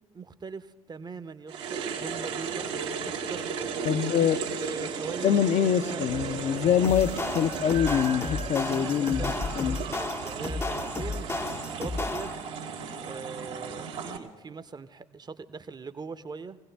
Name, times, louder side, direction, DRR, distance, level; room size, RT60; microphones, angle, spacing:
voice 1, 0.1-2.7 2.9-3.5 3.9-6.0 8.7-12.3 13.0-16.6, right 4 dB, 30° right, 0.8 m, -41 dB
sound 1, 1.5-14.2, right 6 dB, 80° right, 1.5 m, -35 dB
voice 2, 3.8-4.4 5.2-9.8, left 9 dB, 50° left, 0.7 m, -25 dB
sound 2, 6.1-12.3, right 10 dB, 50° right, 0.4 m, -42 dB
sound 3, 6.8-12.5, left 3 dB, 15° left, 0.6 m, -33 dB
22.5 x 16.5 x 3.4 m
hypercardioid pair, 50°, 15 cm